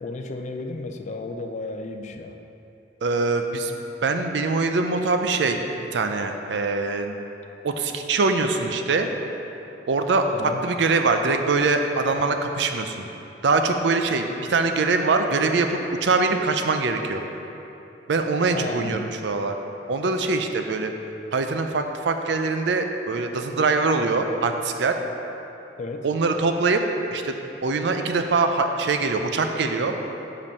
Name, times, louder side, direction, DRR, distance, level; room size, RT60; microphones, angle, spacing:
voice 1, 0.0-2.4 10.3-10.6 18.5-19.1 25.8-26.1, left 2 dB, 40° left, 6 dB, 0.4 m, -33 dB
voice 2, 3.0-3.7 4.0-7.1 7.6-9.1 9.9-10.2 10.6-13.1 13.4-17.2 18.1-19.6 19.9-20.9 21.3-25.0 26.0-26.8 27.1-27.3 27.6-29.9, right 3 dB, 70° right, 6 dB, 0.5 m, -23 dB
5.3 x 5.2 x 5.3 m, 2.9 s
head